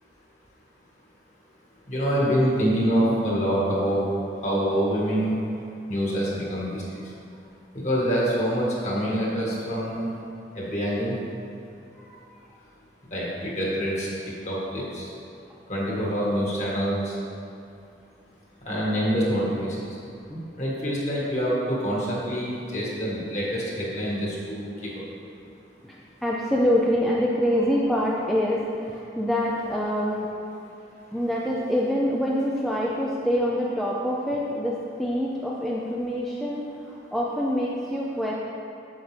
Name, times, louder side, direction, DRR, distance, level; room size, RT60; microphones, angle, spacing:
voice 1, 1.9-4.0 4.4-5.3 5.9-7.0 7.8-10.1 10.5-11.1 13.1-14.1 14.5-15.1 15.7-17.2 18.7-19.8 20.6-24.9, equal, 40° left, -5 dB, 1.8 m, -26 dB
voice 2, 26.2-30.3 31.1-38.3, equal, ahead, -5 dB, 0.4 m, -25 dB
8.0 x 7.5 x 3.4 m, 2.6 s
head